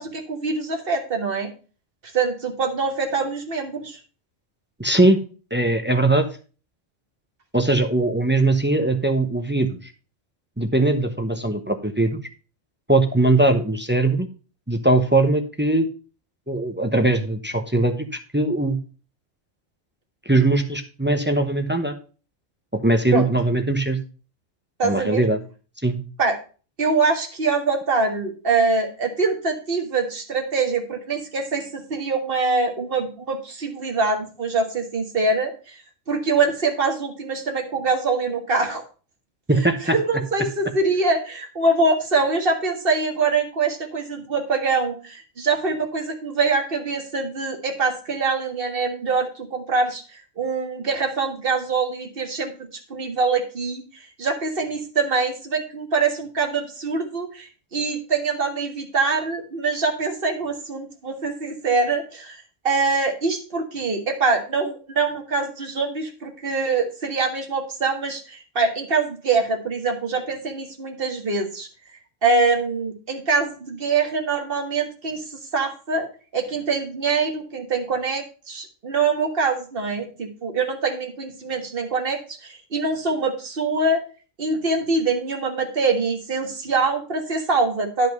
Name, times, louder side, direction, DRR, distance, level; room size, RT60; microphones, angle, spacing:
voice 1, 0.0-1.5 2.1-4.0 23.1-23.3 24.8-25.2 26.2-26.4 26.8-35.8 36.1-38.8 39.9-52.5 52.9-53.8 54.2-62.4 62.6-71.7 72.2-75.2 75.5-76.1 76.3-84.0 84.4-88.1, right 4 dB, 45° right, 3 dB, 1.8 m, -24 dB
voice 2, 4.8-5.2 5.5-6.3 7.5-9.9 10.6-12.2 12.9-14.3 14.7-15.9 16.5-18.1 18.3-18.8 20.3-21.9 22.8-24.0 24.8-25.4 25.8-26.0 39.5-40.0, right 2 dB, 10° right, 6 dB, 0.8 m, -20 dB
10.5 x 5.4 x 5.2 m, 0.36 s
omnidirectional pair, 1.3 m